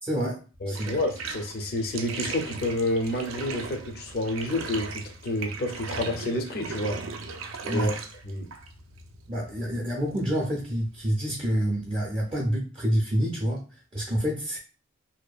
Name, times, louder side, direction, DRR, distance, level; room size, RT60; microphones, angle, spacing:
voice 1, 0.0-1.0 7.7-8.0 9.3-14.6, equal, 25° right, 0.4 m, -28 dB
voice 2, 0.6-7.0 7.6-7.9 8.2-8.5, left 1 dB, 50° left, 0.5 m, -29 dB
Bathtub (filling or washing), 0.7-12.3, right 4 dB, 85° right, 0.4 m, -38 dB
2.6 x 2.2 x 2.3 m
head